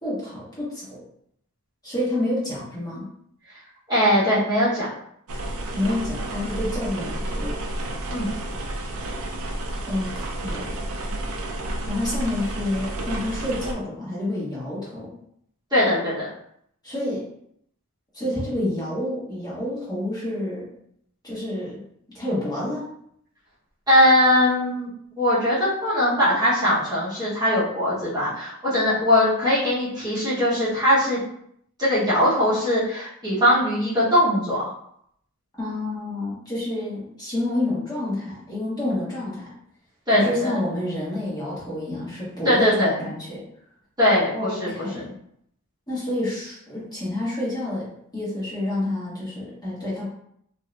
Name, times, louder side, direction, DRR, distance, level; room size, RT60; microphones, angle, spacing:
voice 1, 0.0-1.0 1.8-3.1 5.7-7.6 9.9-10.7 11.9-15.1 16.8-17.2 18.1-20.7 21.2-21.8 22.1-22.9 35.5-39.4 40.1-43.4 44.3-45.1 45.9-47.9 48.1-50.1, left 1 dB, 20° left, -8 dB, 1.3 m, -28 dB
voice 2, 3.9-4.9 8.1-8.3 15.7-16.3 23.9-24.9 25.2-31.2 31.8-34.6 40.1-40.5 42.4-42.9 44.0-44.9, left 1 dB, 20° right, -11 dB, 1.1 m, -20 dB
sound 1, 5.3-13.7, right 1 dB, 65° right, 0.5 m, -31 dB
2.7 x 2.6 x 3.2 m, 0.71 s
head